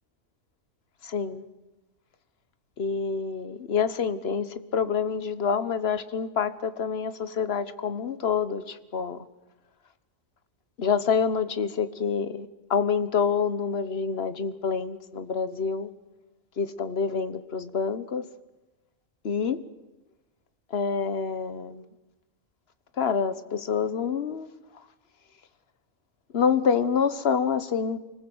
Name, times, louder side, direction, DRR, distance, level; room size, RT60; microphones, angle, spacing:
voice 1, 1.0-1.4 2.8-9.3 10.8-15.9 16.6-18.2 19.2-19.6 20.7-21.8 23.0-24.5 26.3-28.0, left 6 dB, 55° left, 12 dB, 1.4 m, -27 dB
25.0 x 20.0 x 7.9 m, 1.1 s
omnidirectional pair, 1.3 m